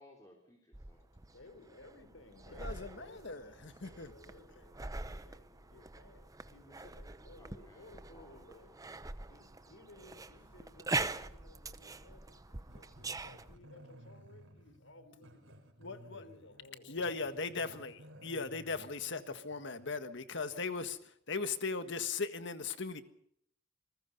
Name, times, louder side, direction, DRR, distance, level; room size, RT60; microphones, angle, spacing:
voice 1, 0.0-1.1 7.4-9.1, left 1 dB, 20° left, 3.6 m, -61 dB
sound 1, 0.7-13.6, right 3 dB, 20° right, 0.8 m, -43 dB
voice 2, 1.1-8.7 9.3-15.7 16.1-17.1, left 2 dB, 90° left, 4.2 m, -58 dB
voice 3, 2.6-4.1 15.8-16.2 16.9-23.0, left 4 dB, 65° left, 1.7 m, -38 dB
Growling, 12.7-20.0, right 1 dB, 75° right, 4.4 m, -57 dB
28.5 x 20.5 x 5.4 m
head